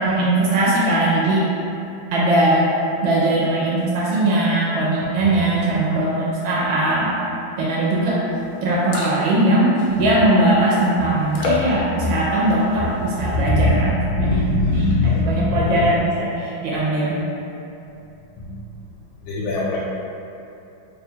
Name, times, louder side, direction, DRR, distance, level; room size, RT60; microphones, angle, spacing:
voice 1, 0.0-1.5 2.1-2.7 3.0-7.1 7.6-8.2 8.6-13.9 14.2-14.4 14.7-17.2, right 1 dB, 85° right, -6 dB, 1.4 m, -20 dB
sound 1, 8.3-8.4 8.7-9.4 9.7-10.3 11.3-11.8 12.3-12.8 13.2-13.4, left 3 dB, 75° left, 0.8 m, -26 dB
voice 2, 13.3-13.8 14.1-15.9 18.4-18.5 19.3-19.8, left 2 dB, 90° left, -6 dB, 1.4 m, -20 dB
3.3 x 2.2 x 4.3 m, 2.8 s
omnidirectional pair, 2.1 m